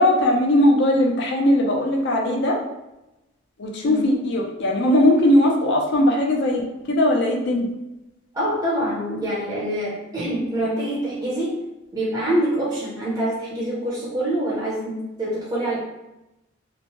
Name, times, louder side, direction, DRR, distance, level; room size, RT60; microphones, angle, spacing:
voice 1, 0.0-2.6 3.6-6.6 6.9-7.7, left 1 dB, 60° left, 1 dB, 0.5 m, -19 dB
voice 2, 8.3-11.6 11.9-15.8, right 1 dB, 20° right, -8 dB, 0.6 m, -25 dB
3.0 x 2.1 x 2.8 m, 0.95 s
head